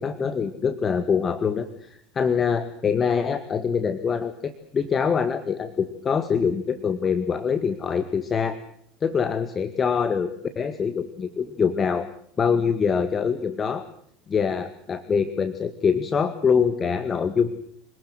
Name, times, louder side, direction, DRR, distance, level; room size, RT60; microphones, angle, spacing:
voice 1, 0.0-8.6 9.0-10.3 10.6-12.1 12.4-13.8 14.3-17.5, left 6 dB, 30° left, 10 dB, 1.9 m, -24 dB
26.0 x 19.0 x 7.9 m, 0.63 s
figure-of-eight pair, 75°, 0 cm